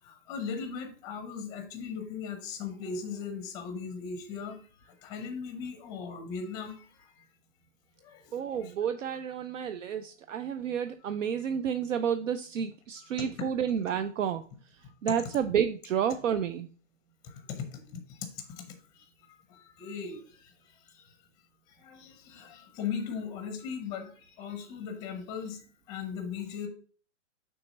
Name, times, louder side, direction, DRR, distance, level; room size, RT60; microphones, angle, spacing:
voice 1, 0.0-7.2 8.0-8.7 13.0-13.1 17.2-18.6 18.9-19.1 19.5-21.1 21.7-26.7, left 6 dB, 10° left, 6 dB, 0.6 m, -39 dB
voice 2, 8.3-14.4 15.0-16.7, right 8 dB, 70° right, 9 dB, 0.6 m, -30 dB
6.2 x 3.5 x 5.2 m, 0.42 s
hypercardioid pair, 155°, 39 cm